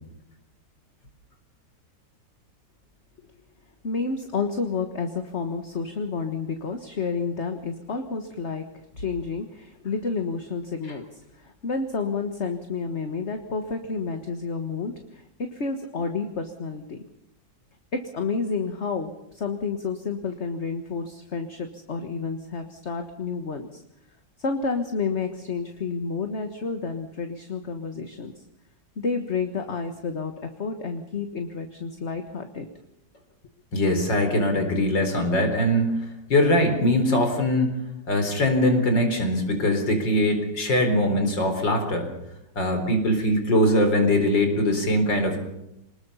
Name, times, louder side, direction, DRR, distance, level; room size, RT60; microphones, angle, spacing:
voice 1, 3.8-8.6 9.0-17.0 17.9-23.8 24.4-28.4 29.0-32.7, left 4 dB, 40° left, 6 dB, 1.7 m, -30 dB
voice 2, 33.7-37.7 38.1-42.1 42.6-45.4, left 1 dB, 80° left, 6 dB, 4.9 m, -22 dB
25.5 x 20.5 x 5.7 m, 0.84 s
omnidirectional pair, 1.9 m